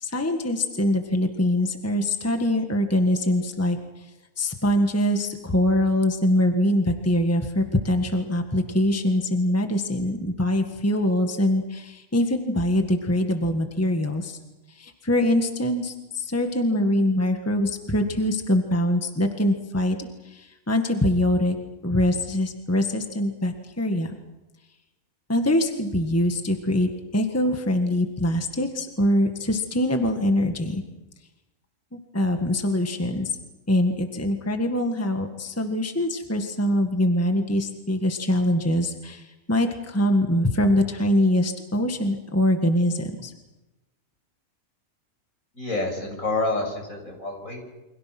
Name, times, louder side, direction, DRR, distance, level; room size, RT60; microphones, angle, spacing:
voice 1, 0.0-3.8 4.4-14.4 14.7-21.6 21.8-24.1 25.3-30.8 31.9-33.4 33.7-43.3, left 1 dB, 10° left, 5 dB, 1.7 m, -23 dB
voice 2, 45.5-47.6, left 2 dB, 65° left, 3 dB, 6.8 m, -28 dB
29.0 x 25.5 x 6.1 m, 1.0 s
omnidirectional pair, 1.5 m